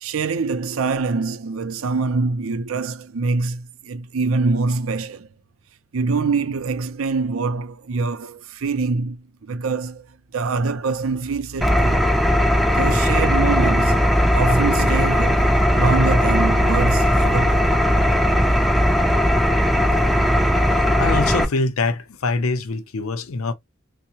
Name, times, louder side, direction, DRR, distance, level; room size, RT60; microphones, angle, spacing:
voice 1, 0.0-5.3 5.9-10.1 10.3-12.1 12.7-17.7, right 4 dB, 75° right, 0.5 m, -24 dB
Engine, 11.6-21.4, equal, ahead, 0.4 m, -18 dB
voice 2, 20.7-23.5, left 3 dB, 80° left, 0.6 m, -24 dB
3.5 x 2.1 x 2.8 m
head